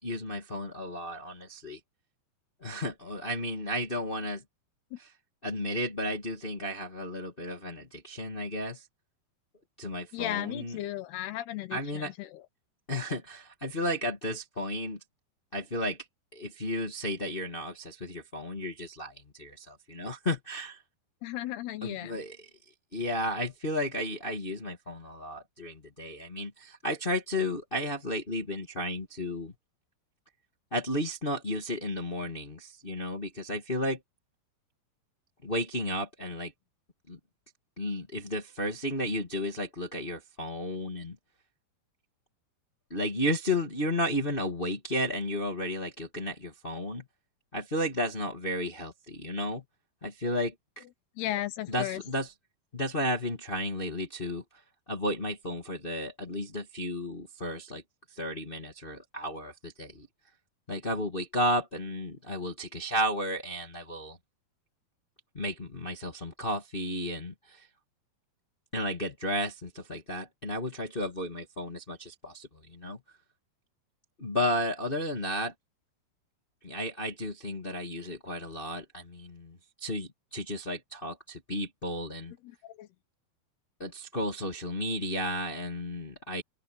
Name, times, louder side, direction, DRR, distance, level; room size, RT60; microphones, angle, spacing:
voice 1, 0.0-1.8 2.6-4.4 5.4-8.8 9.8-10.8 11.7-12.1 12.9-15.0 15.5-16.0 16.3-20.8 21.8-22.3 22.9-29.5 30.7-34.0 35.4-36.5 37.1-37.2 37.8-41.2 42.9-47.0 47.5-49.6 50.0-50.8 51.7-52.3 52.7-54.4 54.9-57.8 58.1-60.1 60.7-64.2 65.3-67.7 68.7-73.0 74.2-75.5 76.6-82.3 83.8-86.4, left 1 dB, 40° left, 0.7 m, -33 dB
voice 2, 10.1-12.4 21.2-22.2 51.2-52.0 82.4-82.9, left 14 dB, 75° left, 3.1 m, -35 dB
open air
omnidirectional pair, 4.8 m